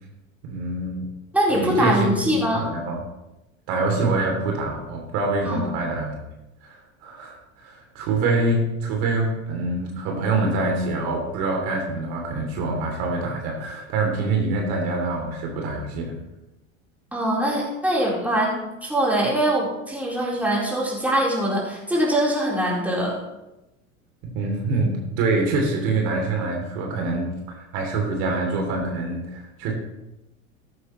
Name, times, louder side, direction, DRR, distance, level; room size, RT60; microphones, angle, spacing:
voice 1, 0.4-1.1 1.5-3.0 3.7-6.1 6.6-6.7 7.0-16.2 24.3-29.7, right 3 dB, 60° right, 1 dB, 3.2 m, -25 dB
voice 2, 1.3-2.7 5.4-5.7 17.1-23.2, right 1 dB, 5° right, -5 dB, 4.2 m, -23 dB
13.5 x 11.0 x 3.2 m, 0.95 s
hypercardioid pair, 90°, 41 cm